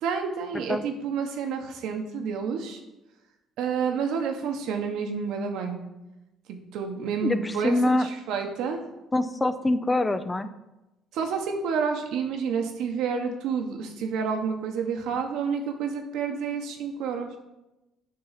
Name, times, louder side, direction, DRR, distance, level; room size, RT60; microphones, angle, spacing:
voice 1, 0.0-2.8 3.6-5.8 6.5-8.8 11.1-17.3, right 6 dB, 80° right, 4 dB, 1.1 m, -29 dB
voice 2, 7.2-8.1 9.1-10.5, left 2 dB, 15° left, 11 dB, 0.4 m, -24 dB
7.5 x 3.9 x 5.7 m, 0.97 s
cardioid pair, 100°, 0 cm